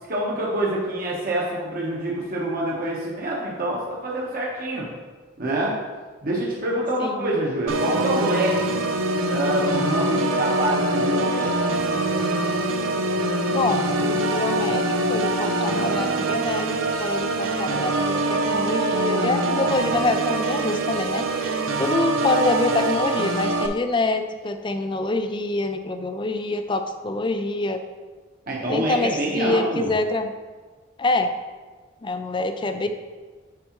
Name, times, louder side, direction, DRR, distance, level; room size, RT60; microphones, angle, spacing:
voice 1, 0.1-4.9 5.4-5.7 6.2-8.8 9.3-11.6 28.5-29.9 32.8-32.9, right 1 dB, 45° right, -4 dB, 1.2 m, -26 dB
voice 2, 7.0-7.3 13.5-21.5 21.8-27.8 28.7-30.3 31.0-31.3 32.0-32.9, left 2 dB, 25° left, 8 dB, 0.4 m, -26 dB
Organ, 7.7-23.7, right 2 dB, 75° right, 0.6 m, -24 dB
9.5 x 4.8 x 3.1 m, 1.4 s
head